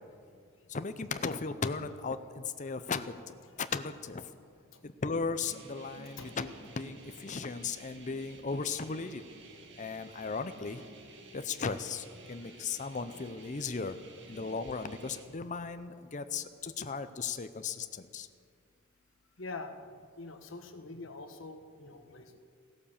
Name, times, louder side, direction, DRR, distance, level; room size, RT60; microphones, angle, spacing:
voice 1, 0.7-3.1 3.6-4.2 4.8-9.2 9.8-10.9 11.3-14.0 14.3-18.3, left 4 dB, 35° left, 10 dB, 0.6 m, -36 dB
sound 1, 5.5-15.2, right 2 dB, 55° right, 1.9 m, -53 dB
voice 2, 12.3-12.8 19.4-19.8 20.2-22.4, left 3 dB, 65° left, 6 dB, 1.3 m, -45 dB
15.5 x 12.0 x 7.2 m, 2.1 s
head